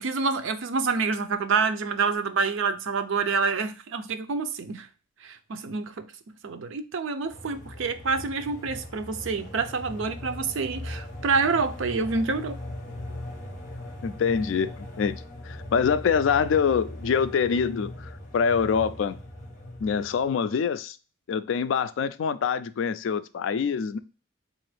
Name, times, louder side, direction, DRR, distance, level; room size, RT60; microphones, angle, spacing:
voice 1, 0.0-4.9 5.2-12.6, right 4 dB, 75° right, 0.5 m, -27 dB
sound 1, 7.2-20.3, left 1 dB, 40° left, 1.0 m, -39 dB
voice 2, 14.0-19.2 19.8-21.0 21.3-24.0, left 6 dB, 70° left, 0.3 m, -25 dB
3.8 x 2.5 x 3.2 m
head